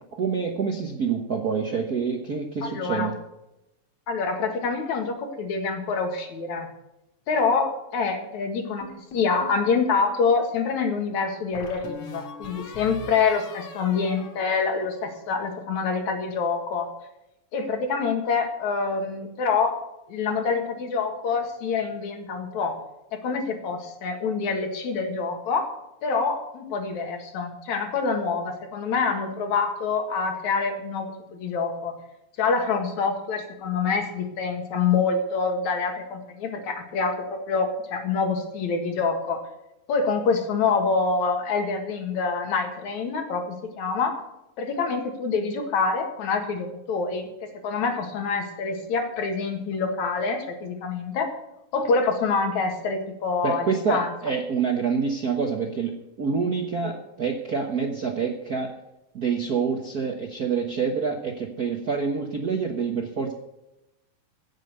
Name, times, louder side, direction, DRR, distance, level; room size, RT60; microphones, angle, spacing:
voice 1, 0.0-3.1 53.4-58.7 59.1-63.3, right 5 dB, 50° right, 2 dB, 1.1 m, -27 dB
voice 2, 2.6-3.1 4.1-6.7 7.3-16.9 17.5-19.8 20.1-22.8 23.1-25.7 26.0-31.9 32.4-39.4 39.9-44.2 44.6-47.3 47.6-51.3 51.7-54.1 56.8-56.9, left 5 dB, 75° left, 5 dB, 3.2 m, -26 dB
sound 1, 8.8-9.6 11.5-15.2, left 3 dB, 55° left, 3.0 m, -41 dB
16.0 x 7.4 x 6.8 m, 0.90 s
omnidirectional pair, 3.4 m